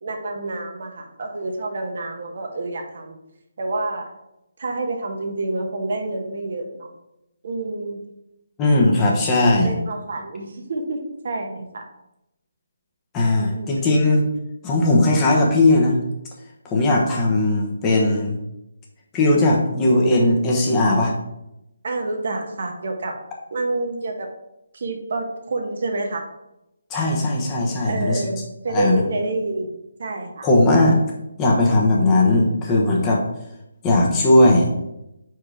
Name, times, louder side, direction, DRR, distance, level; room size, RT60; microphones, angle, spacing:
voice 1, 0.0-3.2 3.6-4.1 4.6-6.9 7.4-8.0 9.6-11.0 11.2-11.8 13.5-13.9 21.8-23.1 23.5-24.3 24.7-26.2 27.8-29.7 30.0-30.5, right 2 dB, 55° right, 3 dB, 1.1 m, -28 dB
voice 2, 8.6-9.7 13.1-14.2 14.6-16.0 16.6-18.4 19.1-21.1 26.9-28.2 28.7-29.0 30.4-31.0 31.4-33.2 33.8-34.7, left 2 dB, 20° left, -2 dB, 1.1 m, -18 dB
4.7 x 4.4 x 4.8 m, 0.88 s
figure-of-eight pair, 150°, 0 cm